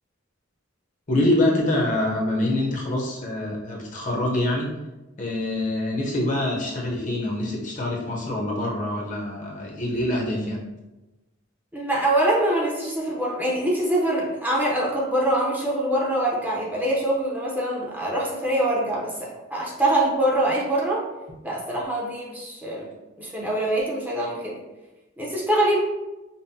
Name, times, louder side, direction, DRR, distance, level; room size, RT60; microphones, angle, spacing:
voice 1, 1.1-4.7 5.2-10.6, left 1 dB, 40° left, -2 dB, 0.7 m, -25 dB
voice 2, 11.7-21.0 21.4-22.9 23.2-24.6 25.2-25.8, right 1 dB, 10° right, -4 dB, 0.6 m, -24 dB
5.3 x 2.1 x 2.7 m, 1.1 s
head